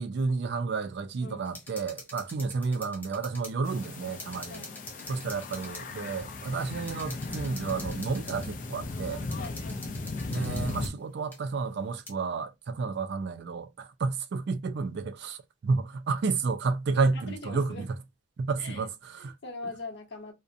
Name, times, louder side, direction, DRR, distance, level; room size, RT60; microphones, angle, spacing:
voice 1, 0.0-4.6 5.1-9.2 10.3-17.9 18.4-19.3, right 4 dB, 55° right, 0.4 m, -31 dB
voice 2, 1.2-1.6 4.5-4.8 9.4-9.9 17.1-17.9 18.6-18.9 19.2-20.3, left 3 dB, 60° left, 0.8 m, -42 dB
sound 1, 1.4-3.5 3.8-3.9 4.2-5.9 6.4-6.5 6.9-8.5 9.3-10.9 11.3-11.4 12.1-12.2, left 1 dB, 10° left, 0.7 m, -46 dB
sound 2, 3.6-10.9, left 3 dB, 40° left, 0.4 m, -37 dB
2.4 x 2.1 x 2.6 m
head